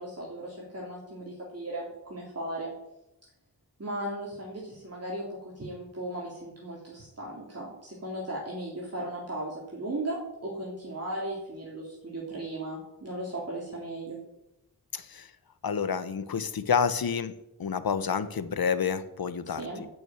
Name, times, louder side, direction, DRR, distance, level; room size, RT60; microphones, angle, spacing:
voice 1, 0.0-2.7 3.8-14.2 19.5-19.8, right 1 dB, 40° right, -4 dB, 3.4 m, -37 dB
voice 2, 14.9-15.3 15.6-17.3 17.6-19.9, left 6 dB, 70° left, 13 dB, 1.0 m, -29 dB
12.5 x 6.3 x 9.0 m, 0.86 s
wide cardioid pair, 110°, 38 cm